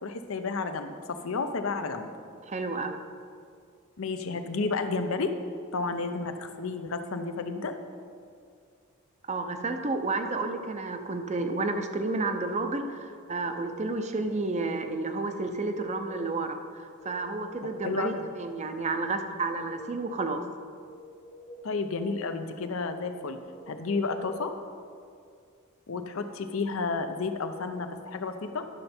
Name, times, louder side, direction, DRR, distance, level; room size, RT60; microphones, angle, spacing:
voice 1, 0.0-2.1 4.0-5.3 5.7-7.7 17.8-18.3 21.6-23.4 23.7-24.5 25.9-28.6, left 4 dB, 70° left, 8 dB, 0.7 m, -31 dB
voice 2, 2.5-3.0 9.3-20.4, right 3 dB, 35° right, 7 dB, 0.6 m, -31 dB
sound 1, 11.7-12.6 13.1-13.9 15.5-16.5 16.9-18.0 19.4-20.4 20.9-21.9 23.5-24.5, equal, 20° left, 0.5 m, -47 dB
11.5 x 6.6 x 4.4 m, 2.3 s
head